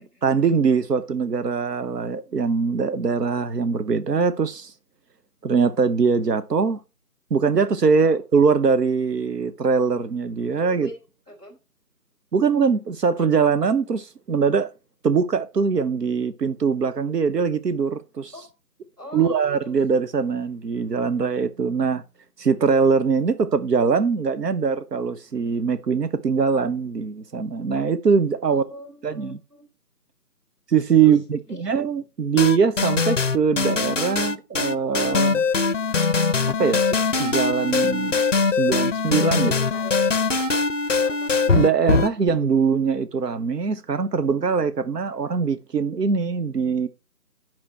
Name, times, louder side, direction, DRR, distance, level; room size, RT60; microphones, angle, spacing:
voice 1, 0.0-4.7 5.4-6.8 7.3-10.9 12.3-14.7 15.0-18.3 19.1-22.0 22.4-28.6 29.0-29.4 30.7-35.5 36.5-36.9 37.2-38.2 38.5-39.5 41.5-46.9, right 5 dB, 85° right, 0.9 m, -22 dB
voice 2, 7.9-8.2 10.6-11.0 11.3-11.6 18.3-18.5 19.0-19.8 28.5-29.7 31.0-31.7 39.4-40.1 41.0-41.3, equal, 15° right, 2.4 m, -41 dB
sound 1, 32.4-42.3, left 4 dB, 50° left, 0.6 m, -22 dB
9.0 x 5.9 x 4.3 m
figure-of-eight pair, 175°, 47 cm